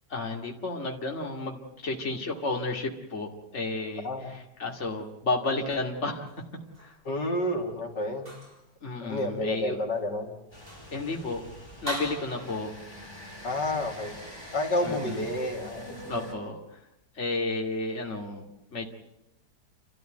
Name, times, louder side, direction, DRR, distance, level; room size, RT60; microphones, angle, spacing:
voice 1, 0.1-4.1 4.3-6.3 6.8-6.9 8.8-9.8 10.9-11.5 11.8-12.7 14.8-15.2 16.1-16.6 17.1-18.9, left 2 dB, 40° left, 1 dB, 2.8 m, -32 dB
sound 1, 6.1-7.0 8.2-8.7 9.2-9.3 9.9-10.0 10.5-11.0 11.9-12.6, equal, 30° right, 6.1 m, -40 dB
voice 2, 7.1-8.3 9.0-10.3 13.4-14.1 14.5-16.0, left 1 dB, 80° left, 2 dB, 3.5 m, -30 dB
sound 2, 10.5-16.3, equal, 15° left, 4.0 m, -45 dB
30.0 x 13.5 x 9.3 m, 0.85 s
omnidirectional pair, 1.8 m